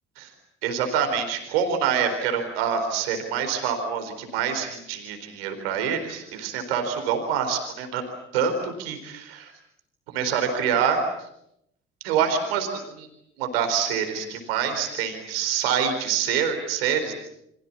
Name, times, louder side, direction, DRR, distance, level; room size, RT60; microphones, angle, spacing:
voice 1, 0.6-8.0 8.3-9.5 10.1-11.0 12.0-13.1 13.4-17.1, right 7 dB, 80° right, 5 dB, 4.3 m, -26 dB
29.5 x 25.0 x 7.3 m, 0.77 s
hypercardioid pair, 50°, 29 cm